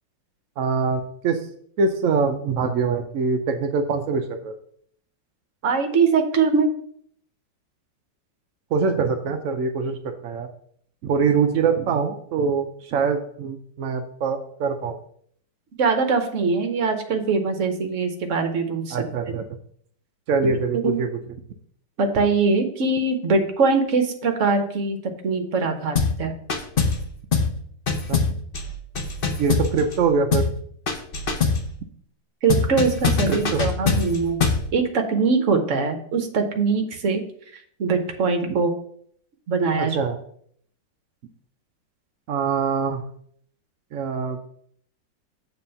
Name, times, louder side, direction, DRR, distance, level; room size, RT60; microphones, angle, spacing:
voice 1, 0.6-1.5 1.8-4.6 8.7-10.0 10.2-10.5 11.0-15.0 18.9-19.4 20.3-21.1 28.1-28.3 29.4-30.5 33.3-33.6 39.8-40.2 42.3-43.0 43.9-44.5, right 5 dB, 70° right, 4 dB, 0.7 m, -23 dB
voice 2, 5.6-6.7 15.8-19.0 20.8-21.0 22.0-25.0 25.2-26.3 32.4-34.4 34.7-37.2 37.8-38.7 39.5-40.0, right 4 dB, 50° right, 5 dB, 1.0 m, -22 dB
sound 1, 26.0-26.2 26.5-27.0 27.3-27.6 27.9-30.0 30.3-30.6 30.9-31.7 32.5-34.7, left 5 dB, 50° left, 0.6 m, -23 dB
7.4 x 3.4 x 5.6 m, 0.62 s
omnidirectional pair, 2.0 m